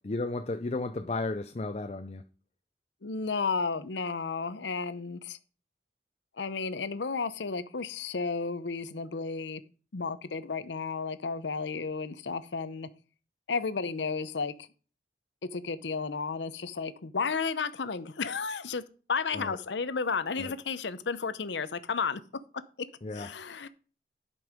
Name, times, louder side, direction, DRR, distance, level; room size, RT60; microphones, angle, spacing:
voice 1, 0.0-2.2 19.3-19.6 20.4-20.5 23.0-23.3, left 2 dB, 35° left, 0.5 m, -34 dB
voice 2, 3.0-5.4 6.4-9.6 9.9-12.9 13.5-14.7 15.5-18.8 19.1-22.2 23.1-23.7, left 5 dB, 85° left, 0.7 m, -33 dB
11.0 x 5.4 x 5.1 m
head